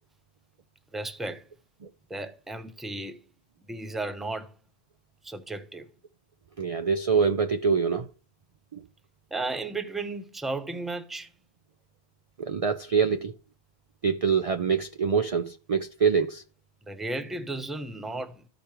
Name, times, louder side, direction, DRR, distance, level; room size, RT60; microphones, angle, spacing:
voice 1, 0.9-1.5 2.1-3.2 3.7-4.5 5.2-5.9 9.3-11.3 16.9-18.4, right 2 dB, ahead, 0.7 m, -34 dB
voice 2, 6.6-8.1 12.5-13.3 14.0-16.4, right 6 dB, 45° right, 0.5 m, -25 dB
14.0 x 5.1 x 2.9 m
omnidirectional pair, 1.1 m